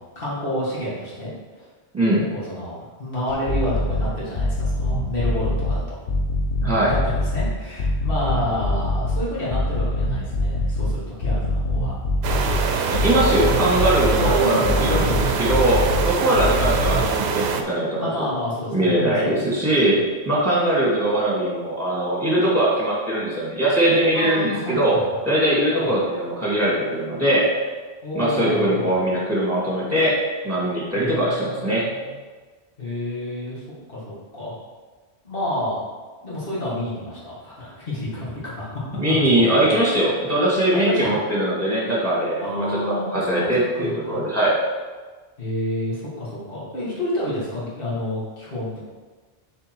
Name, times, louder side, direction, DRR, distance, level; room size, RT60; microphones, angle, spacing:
voice 1, 0.0-1.7 2.3-6.0 6.9-11.9 14.2-15.2 16.3-16.6 18.0-20.0 24.1-25.1 25.7-26.0 28.0-29.1 30.9-32.1 32.8-33.6 33.9-34.6 35.2-35.8 36.2-38.7 39.1-39.2 39.5-39.7 40.7-41.2 42.4-44.2 45.4-48.8, left 1 dB, 55° left, -7 dB, 2.1 m, -29 dB
sound 1, 3.5-4.0 4.4-5.7 6.1-7.5 7.8-9.2 9.5-10.9 11.2-12.6 12.9-14.3 14.6-16.0 16.4-17.0, left 2 dB, 85° left, 1.4 m, -23 dB
sound 2, 12.2-17.6, right 6 dB, 70° right, 0.8 m, -24 dB
voice 2, 12.9-18.3 18.7-20.0 20.3-25.0 25.3-27.5 28.1-30.2 30.4-31.9 39.0-42.7 43.1-44.5, right 1 dB, 15° right, -6 dB, 2.2 m, -21 dB
6.6 x 4.2 x 4.6 m, 1.4 s
omnidirectional pair, 1.1 m